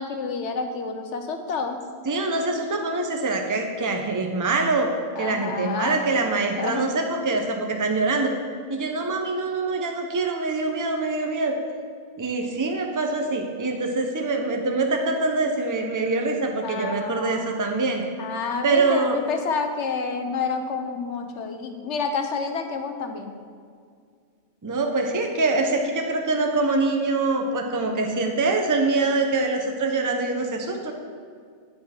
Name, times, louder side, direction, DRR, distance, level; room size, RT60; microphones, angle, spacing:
voice 1, 0.0-1.8 5.2-6.0 6.6-6.8 16.6-17.5 18.2-23.3, left 5 dB, 85° left, 5 dB, 1.1 m, -29 dB
voice 2, 2.1-4.9 5.2-8.3 8.7-11.5 12.2-18.0 18.6-19.2 24.6-30.9, right 3 dB, 20° right, 3 dB, 0.7 m, -24 dB
10.0 x 6.4 x 4.4 m, 2.2 s
omnidirectional pair, 1.2 m